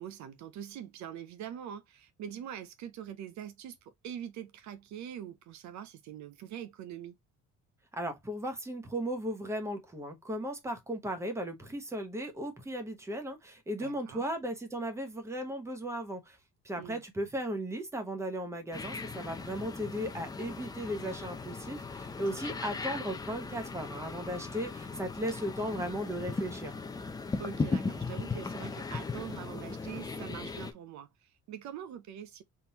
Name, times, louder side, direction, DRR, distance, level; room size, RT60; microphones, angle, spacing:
voice 1, 0.0-7.1 13.8-14.3 16.8-17.0 22.3-22.6 27.4-32.4, right 9 dB, 65° right, 0.6 m, -44 dB
voice 2, 7.9-16.4 16.6-26.7, equal, 10° right, 0.9 m, -36 dB
sound 1, 18.7-30.7, left 4 dB, 15° left, 0.4 m, -38 dB
4.2 x 3.7 x 2.8 m
cardioid pair, 180°, 31 cm